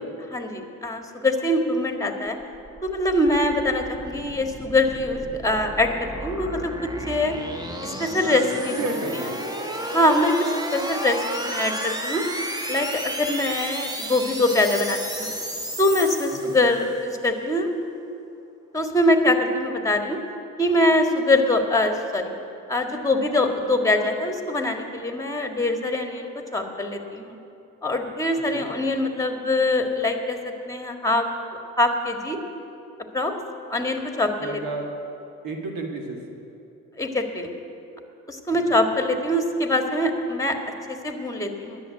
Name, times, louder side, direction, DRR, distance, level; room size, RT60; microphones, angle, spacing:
voice 1, 0.3-2.4 2.8-7.3 7.8-8.8 9.9-12.2 12.7-15.3 15.8-17.7 18.7-20.2 20.6-22.4 22.7-27.4 27.8-30.4 30.7-31.3 31.8-32.4 33.1-33.3 33.7-34.6 37.0-37.5 38.3-40.6 40.9-41.8, left 1 dB, 10° left, 4 dB, 1.6 m, -23 dB
sound 1, 2.4-17.0, equal, 10° right, 1.2 m, -33 dB
voice 2, 8.7-9.4 28.5-28.7 34.4-34.9 35.4-36.2 38.7-38.8, right 2 dB, 65° right, 2 dB, 1.8 m, -31 dB
11.0 x 7.4 x 9.3 m, 2.7 s
hypercardioid pair, 65°, 37 cm